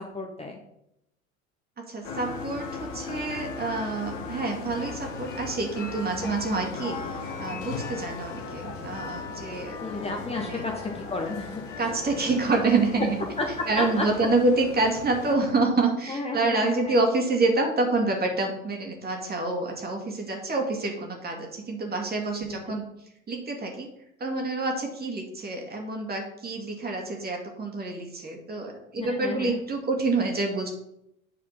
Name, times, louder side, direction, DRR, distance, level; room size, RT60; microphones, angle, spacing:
voice 1, 0.1-0.6 6.2-6.4 9.8-10.7 11.1-11.9 13.4-14.0 16.1-17.0 22.5-22.6 28.9-29.6, left 2 dB, 15° left, 1 dB, 1.2 m, -32 dB
voice 2, 1.9-7.0 7.4-9.8 10.4-10.6 11.8-13.2 13.7-22.8 23.3-23.9 24.2-30.7, right 3 dB, 20° right, 2 dB, 2.3 m, -27 dB
sound 1, 2.0-15.3, left 4 dB, 65° left, 1.3 m, -37 dB
9.3 x 5.0 x 5.3 m, 0.80 s
figure-of-eight pair, 75°, 41 cm